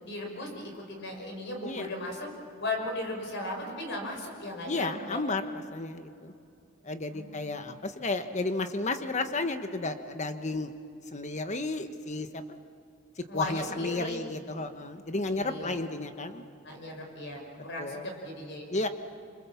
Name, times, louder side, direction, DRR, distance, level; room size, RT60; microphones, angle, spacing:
voice 1, 0.0-2.3 2.6-5.2 7.1-7.5 13.3-14.2 15.3-15.7 16.6-18.6, left 1 dB, 60° left, 2 dB, 5.6 m, -37 dB
voice 2, 4.7-6.3 6.8-10.7 11.1-12.4 13.2-16.4 17.8-18.1 18.7-18.9, left 2 dB, 35° left, 8 dB, 1.3 m, -32 dB
28.0 x 25.5 x 7.3 m, 2.6 s
head